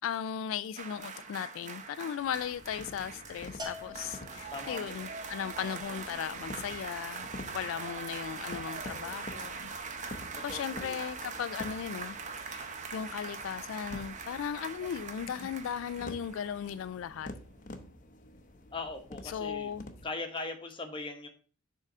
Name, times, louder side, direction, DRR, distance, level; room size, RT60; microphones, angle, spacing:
voice 1, 0.0-7.3 7.5-9.7 10.4-12.2 12.5-17.3 19.3-19.9, left 8 dB, 80° left, 0.3 m, -37 dB
sound 1, 0.8-17.0 17.3-17.5, right 5 dB, 40° right, 0.8 m, -42 dB
sound 2, 2.2-20.1, left 1 dB, 40° left, 0.7 m, -49 dB
Bell, 3.6-5.0, left 2 dB, 20° right, 1.4 m, -45 dB
voice 2, 10.4-11.0 18.7-19.7 20.0-21.3, left 3 dB, 25° left, 1.0 m, -40 dB
6.5 x 3.8 x 6.0 m
head